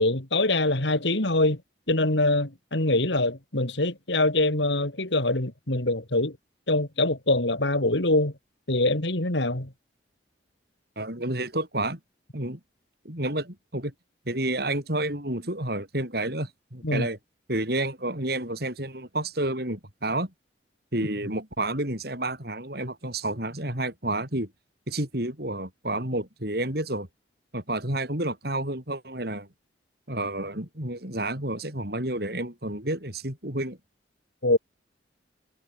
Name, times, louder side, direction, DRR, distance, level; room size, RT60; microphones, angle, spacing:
voice 1, 0.0-1.6 1.9-6.4 6.7-8.3 8.7-9.7 16.8-17.1 34.4-34.6, left 2 dB, 70° left, 3.3 m, -24 dB
voice 2, 11.0-12.0 12.3-12.6 13.0-13.9 14.3-17.2 17.5-20.3 20.9-24.5 24.9-27.1 27.5-29.5 30.1-33.8, right 1 dB, 55° right, 5.5 m, -30 dB
head